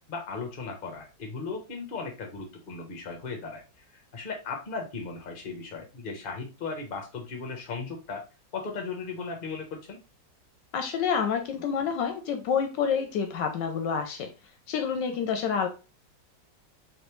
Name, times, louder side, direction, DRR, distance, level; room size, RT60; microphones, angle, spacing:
voice 1, 0.1-3.6 4.1-8.2 8.5-10.0, left 4 dB, 35° left, 2 dB, 0.9 m, -36 dB
voice 2, 10.7-14.3 14.7-15.7, left 6 dB, 75° left, 5 dB, 1.2 m, -28 dB
3.8 x 3.2 x 3.0 m, 0.31 s
omnidirectional pair, 2.1 m